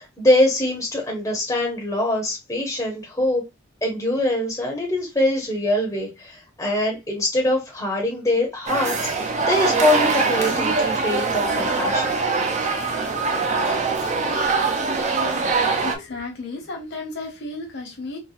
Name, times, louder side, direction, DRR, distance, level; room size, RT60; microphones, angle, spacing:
voice 1, 0.0-3.4 3.8-12.2, left 1 dB, 15° left, 0.8 m, -23 dB
sound 1, 8.7-16.0, right 4 dB, 35° right, 0.6 m, -22 dB
voice 2, 15.8-18.2, left 3 dB, 60° left, 1.1 m, -33 dB
4.0 x 2.2 x 2.3 m
head